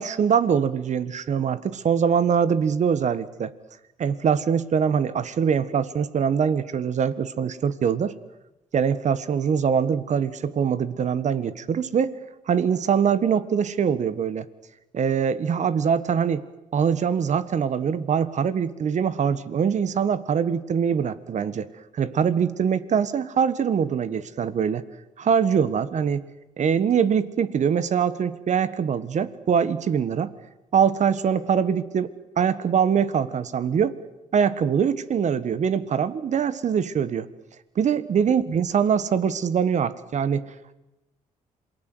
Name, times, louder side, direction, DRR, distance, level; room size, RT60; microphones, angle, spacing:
voice 1, 0.0-3.5 4.0-8.1 8.7-12.2 12.5-14.5 14.9-16.4 16.7-21.7 21.9-24.8 25.2-26.2 26.6-30.3 30.7-34.0 34.3-37.3 37.7-40.5, right 7 dB, 55° right, 15 dB, 1.6 m, -23 dB
27.5 x 19.5 x 8.0 m, 0.95 s
supercardioid pair, 70°, 14 cm